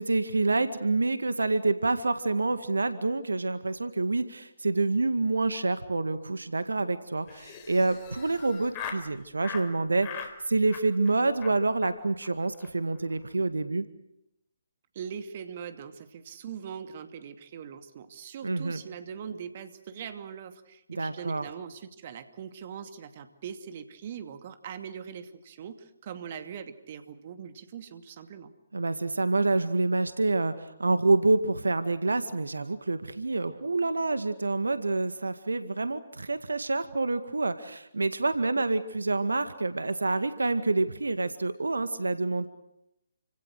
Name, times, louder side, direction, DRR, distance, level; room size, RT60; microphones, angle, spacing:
voice 1, 0.0-13.8 18.4-18.8 21.0-21.4 28.7-42.5, right 3 dB, 75° right, 11 dB, 2.0 m, -27 dB
Laughter, 7.3-9.1 9.4-9.7 10.0-10.3 10.7-11.1 11.4-11.5 11.8-11.9 12.2-12.3 12.5-12.7 13.0-13.3, left 7 dB, 25° left, 4.2 m, -41 dB
voice 2, 14.9-28.5, right 7 dB, 40° right, 9 dB, 2.5 m, -41 dB
29.5 x 26.0 x 6.5 m, 0.84 s
figure-of-eight pair, 140°, 0 cm